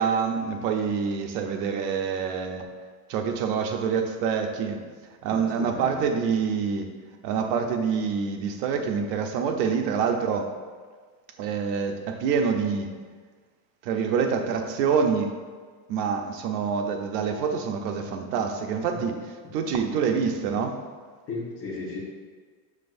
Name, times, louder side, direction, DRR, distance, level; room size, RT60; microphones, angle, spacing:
voice 1, 0.0-2.6 3.1-4.8 5.2-6.9 7.2-10.5 11.4-12.9 13.8-15.3 15.9-19.2 19.5-20.8, right 6 dB, 70° right, 4 dB, 0.9 m, -26 dB
voice 2, 5.3-6.0 18.9-19.0 21.3-22.0, left 3 dB, 25° left, -5 dB, 1.3 m, -35 dB
7.5 x 6.4 x 2.6 m, 1.5 s
cardioid pair, 175°, 49 cm